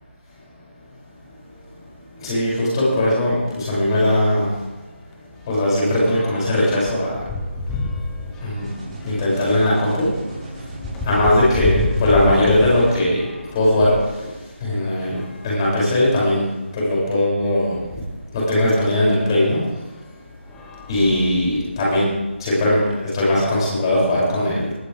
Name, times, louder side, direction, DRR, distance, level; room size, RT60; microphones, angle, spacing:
voice 1, 2.2-4.5 5.5-7.1 8.4-8.7 9.0-10.1 11.0-14.3 14.6-16.4 16.7-17.8 18.3-19.6 20.9-22.1 22.4-24.7, left 1 dB, 20° left, -6 dB, 7.4 m, -19 dB
sound 1, 4.7-14.2 14.9-16.2 16.9-17.0 17.3-17.4 19.0-19.2 19.8-20.0 20.5-21.7, left 3 dB, 5° left, 0.9 m, -30 dB
sound 2, 8.6-13.0, right 1 dB, 35° right, 6.0 m, -35 dB
20.0 x 17.0 x 3.7 m, 1.2 s
figure-of-eight pair, 165°, 7 cm